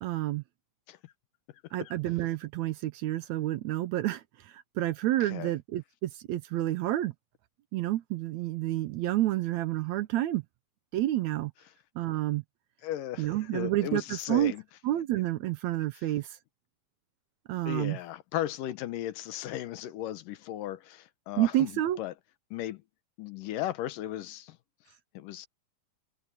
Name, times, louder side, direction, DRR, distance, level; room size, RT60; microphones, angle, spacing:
voice 1, 0.0-0.4 1.7-7.1 7.7-10.4 10.9-11.5 12.0-12.4 13.2-14.5 14.8-16.4 17.5-18.0 21.4-22.0, right 14 dB, 75° right, 1.8 m, -29 dB
voice 2, 5.2-5.5 12.8-14.6 17.7-21.7 22.0-22.1 22.5-22.8 23.2-24.6 25.1-25.5, left 13 dB, 85° left, 2.7 m, -36 dB
omnidirectional pair, 3.7 m